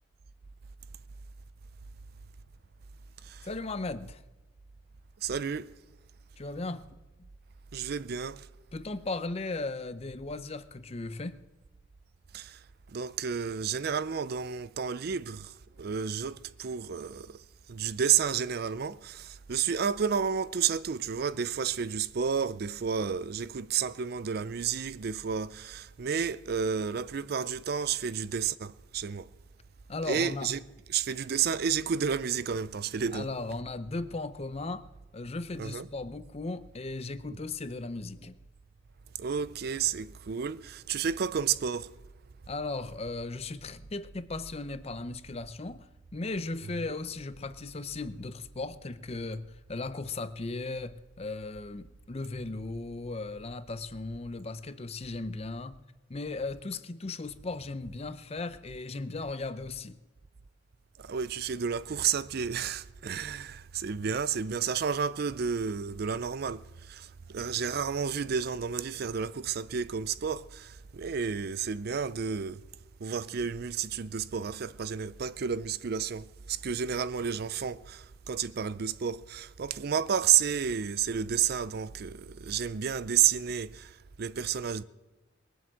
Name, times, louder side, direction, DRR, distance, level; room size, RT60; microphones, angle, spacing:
voice 1, 3.4-4.2 6.4-6.9 8.7-11.4 29.9-30.5 33.1-34.9 35.1-38.4 42.5-55.8 56.1-60.0, left 3 dB, 35° left, 0.6 m, -37 dB
voice 2, 5.2-5.7 7.7-8.5 12.3-12.6 12.9-17.4 17.7-29.3 30.1-30.6 30.9-33.3 35.6-35.9 39.2-41.9 61.0-72.6 73.0-84.8, right 7 dB, 55° right, 0.4 m, -31 dB
20.5 x 7.8 x 7.6 m
head